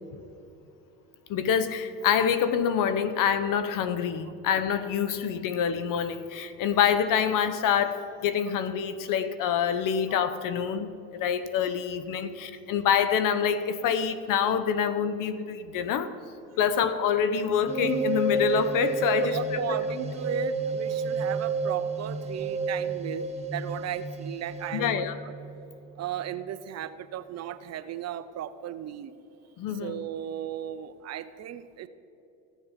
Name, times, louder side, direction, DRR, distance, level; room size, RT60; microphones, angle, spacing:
voice 1, 1.3-16.1 16.6-19.4 19.7-19.8 24.7-25.1 29.6-30.0, left 7 dB, 55° left, 12 dB, 0.9 m, -26 dB
sound 1, 17.7-26.2, right 3 dB, 15° right, 1.2 m, -31 dB
voice 2, 19.2-25.3 26.0-29.1 29.7-31.9, right 11 dB, 40° right, 13 dB, 0.6 m, -36 dB
15.5 x 7.3 x 5.2 m, 2.8 s
supercardioid pair, 90°, 40 cm